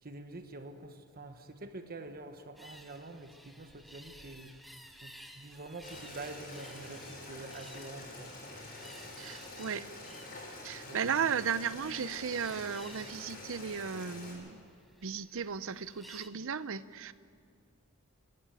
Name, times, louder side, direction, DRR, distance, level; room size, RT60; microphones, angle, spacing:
voice 1, 0.0-4.6 5.0-8.3 10.8-11.0, right 2 dB, 45° right, 7 dB, 1.2 m, -46 dB
sound 1, 2.6-16.3, equal, ahead, 1.2 m, -56 dB
Boiling, 5.8-14.3, left 2 dB, 45° left, 7.1 m, -47 dB
voice 2, 9.2-9.9 10.6-14.6 15.0-17.1, right 6 dB, 65° right, 15 dB, 0.7 m, -35 dB
28.0 x 12.0 x 9.2 m, 2.3 s
head